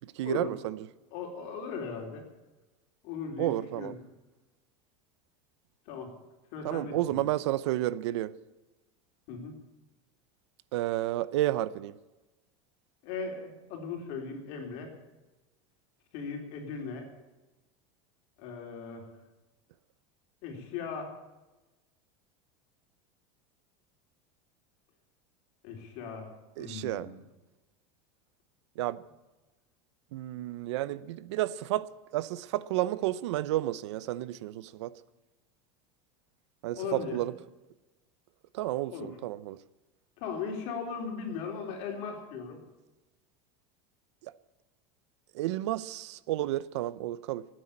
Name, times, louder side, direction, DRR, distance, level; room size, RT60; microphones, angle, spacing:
voice 1, 0.0-0.9 3.4-3.9 6.6-8.3 10.7-12.0 26.6-27.1 28.8-29.0 30.1-34.9 36.6-37.3 38.5-39.6 44.2-44.3 45.3-47.5, right 15 dB, 80° right, 0.7 m, -31 dB
voice 2, 1.1-2.2 3.0-4.0 5.9-6.1 6.5-7.2 9.3-9.6 13.0-14.9 16.1-17.1 18.4-19.1 20.4-21.1 25.6-26.3 26.6-27.1 36.8-37.2 38.9-39.1 40.2-42.6, left 5 dB, 50° left, 3.9 m, -38 dB
15.5 x 9.3 x 8.5 m
supercardioid pair, 165°, 14 cm